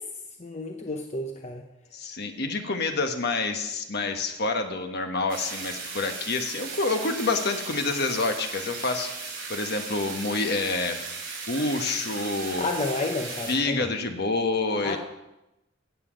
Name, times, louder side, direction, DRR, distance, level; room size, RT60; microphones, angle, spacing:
voice 1, 0.4-1.6 12.6-13.9 14.8-15.0, left 2 dB, 35° left, 3 dB, 0.8 m, -31 dB
voice 2, 1.9-11.0 11.5-12.7 13.5-15.0, left 3 dB, 55° left, 6 dB, 1.3 m, -28 dB
sound 1, 5.3-13.6, right 4 dB, 55° right, 5.6 m, -37 dB
15.5 x 8.3 x 5.2 m, 0.94 s
head